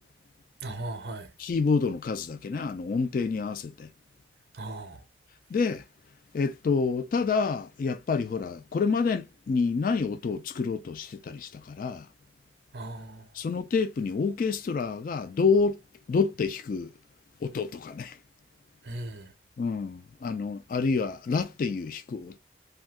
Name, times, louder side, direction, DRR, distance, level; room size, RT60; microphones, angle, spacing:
voice 1, 0.6-1.3 4.5-5.0 12.7-13.3 18.8-19.3, right 2 dB, 60° right, 0.6 m, -37 dB
voice 2, 1.4-3.9 5.5-5.8 6.3-12.1 13.3-15.8 16.1-16.9 17.4-18.2 19.6-22.4, left 4 dB, 50° left, 0.3 m, -28 dB
2.6 x 2.3 x 3.5 m
head